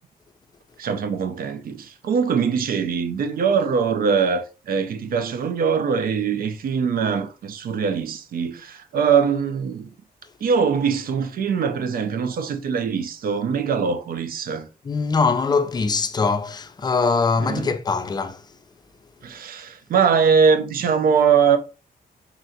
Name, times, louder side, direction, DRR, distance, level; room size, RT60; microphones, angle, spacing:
voice 1, 0.8-9.9 10.4-14.7 17.4-17.7 19.2-21.6, right 6 dB, 65° right, 0.5 m, -22 dB
voice 2, 14.8-18.4, left 4 dB, 25° left, 0.4 m, -22 dB
3.9 x 3.3 x 2.7 m
wide cardioid pair, 150°, 16 cm